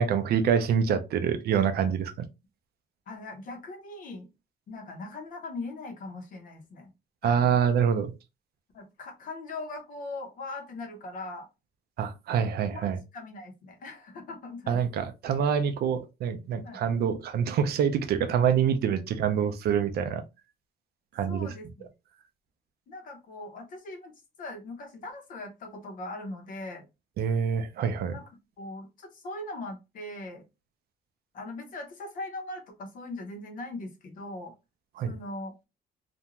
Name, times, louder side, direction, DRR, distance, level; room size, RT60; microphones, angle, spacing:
voice 1, 0.0-2.3 7.2-8.1 12.0-13.0 14.7-20.2 21.1-21.5 27.2-28.2 35.0-35.1, right 7 dB, 65° right, 0.4 m, -26 dB
voice 2, 3.1-4.3 4.7-6.9 7.2-7.6 8.7-11.5 12.6-14.8 16.6-16.8 21.3-21.9 22.9-24.1 24.4-26.9 28.1-28.2 28.6-30.4 31.3-34.5 35.1-35.5, left 2 dB, 50° left, 0.7 m, -40 dB
2.5 x 2.2 x 2.8 m
cardioid pair, 165°, 18 cm